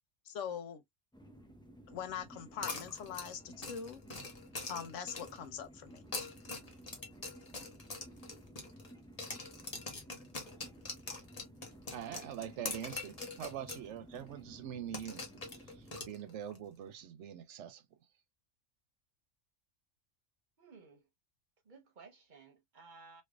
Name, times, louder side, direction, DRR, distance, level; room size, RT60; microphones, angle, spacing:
voice 1, 0.3-0.8 1.9-4.0 4.7-6.0, left 8 dB, 80° left, 1.1 m, -42 dB
sound 1, 1.1-16.1, right 1 dB, 5° left, 0.5 m, -56 dB
sound 2, 2.6-5.5 6.0-8.9 9.2-13.9 14.1-14.2 14.9-16.6, left 3 dB, 35° left, 1.0 m, -43 dB
voice 2, 11.9-15.2 15.6-17.8, right 9 dB, 75° right, 0.9 m, -44 dB
voice 3, 20.6-21.0 21.7-23.2, right 4 dB, 45° right, 0.9 m, -56 dB
3.2 x 3.1 x 2.2 m
omnidirectional pair, 1.3 m